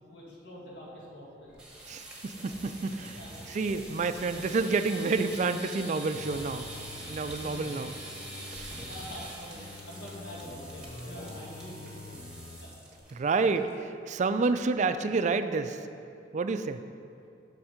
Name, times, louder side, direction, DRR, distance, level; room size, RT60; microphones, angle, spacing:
voice 1, 0.1-1.5 3.2-3.5 8.3-9.5 9.9-12.2 12.6-12.7, equal, 75° left, -5 dB, 1.9 m, -46 dB
sound 1, 1.5-13.1 13.4-13.7 14.0-14.1 14.5-14.9, right 1 dB, 5° right, 1.3 m, -44 dB
voice 2, 1.9-3.2 3.5-6.7 7.1-8.0 8.5-8.8 13.1-15.8 16.3-16.8, right 4 dB, 40° right, 10 dB, 0.3 m, -29 dB
sound 2, 6.1-9.2 9.6-12.6 13.0-13.1, left 3 dB, 45° left, 0.6 m, -46 dB
7.1 x 6.3 x 5.1 m, 2.5 s
head